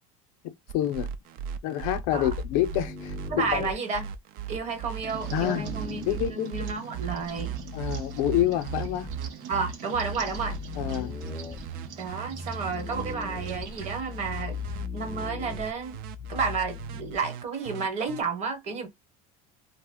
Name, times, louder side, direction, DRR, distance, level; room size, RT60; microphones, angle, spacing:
voice 1, 0.4-1.1 1.6-3.7 5.3-5.7 6.1-6.6 7.7-9.1 10.8-11.2, left 12 dB, 75° left, 0.5 m, -28 dB
sound 1, 0.7-18.2, right 8 dB, 55° right, 0.4 m, -38 dB
sound 2, 1.8-3.7 4.6-6.3 7.2-9.2 10.0-17.2, left 4 dB, 5° left, 0.4 m, -40 dB
voice 2, 3.3-4.1 4.5-7.7 9.5-10.6 12.0-14.6 14.9-16.0 16.3-18.9, right 4 dB, 40° right, 1.0 m, -31 dB
sound 3, 5.0-14.8, right 8 dB, 75° right, 0.8 m, -44 dB
2.4 x 2.0 x 3.5 m
supercardioid pair, 130°, 18 cm